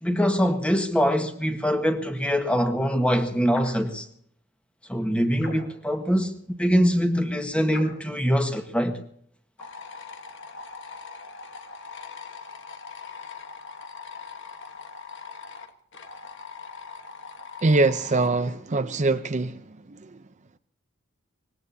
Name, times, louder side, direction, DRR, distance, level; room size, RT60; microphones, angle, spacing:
voice 1, 0.0-4.0 4.9-6.3 6.6-9.0, equal, 5° left, 1.5 m, -23 dB
sound 1, 3.5-3.9 5.4-5.9 7.7-8.1, left 1 dB, 80° left, 5.2 m, -41 dB
sound 2, 9.6-18.3, left 5 dB, 60° left, 1.4 m, -41 dB
voice 2, 17.6-19.5, right 3 dB, 35° right, 0.6 m, -22 dB
25.0 x 20.0 x 2.8 m
head